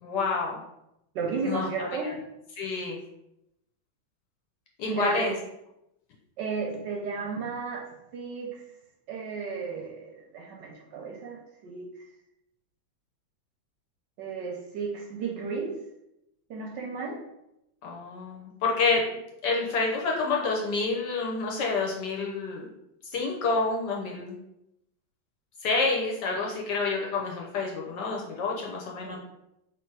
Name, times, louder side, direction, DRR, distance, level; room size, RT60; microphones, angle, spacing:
voice 1, 0.0-0.6 1.4-2.1 2.6-3.0 4.8-5.3 17.8-19.0 19.4-22.7 23.1-24.4 25.6-29.2, left 4 dB, 65° left, -1 dB, 1.1 m, -28 dB
voice 2, 1.1-2.1 4.9-5.3 6.4-7.9 8.1-8.6 9.1-11.9 14.2-15.8 16.5-17.2 29.0-29.2, right 4 dB, 70° right, 0 dB, 1.2 m, -33 dB
3.3 x 3.0 x 4.6 m, 0.85 s
omnidirectional pair, 2.2 m